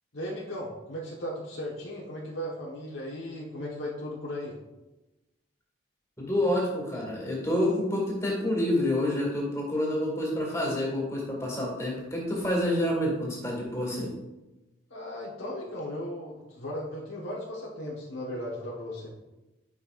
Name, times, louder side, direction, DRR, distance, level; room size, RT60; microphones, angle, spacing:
voice 1, 0.1-4.6 14.9-19.1, left 1 dB, 80° left, -4 dB, 1.3 m, -36 dB
voice 2, 6.2-14.1, left 1 dB, 15° left, -3 dB, 2.0 m, -28 dB
9.9 x 5.5 x 2.5 m, 1.0 s
head